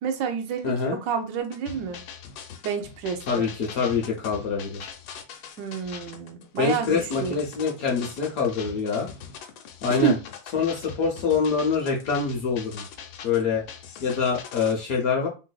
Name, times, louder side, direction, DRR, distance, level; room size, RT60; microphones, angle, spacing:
voice 1, 0.0-2.0 2.6-3.5 5.6-7.4 9.9-10.2, right 7 dB, 75° right, 1.2 m, -29 dB
voice 2, 0.6-1.0 3.3-4.9 6.6-9.1 9.8-10.1 10.5-12.8 13.2-13.6 14.0-15.3, left 5 dB, 65° left, 1.0 m, -25 dB
sound 1, 1.4-14.7, left 7 dB, 85° left, 1.3 m, -42 dB
3.9 x 2.5 x 2.2 m
omnidirectional pair, 2.1 m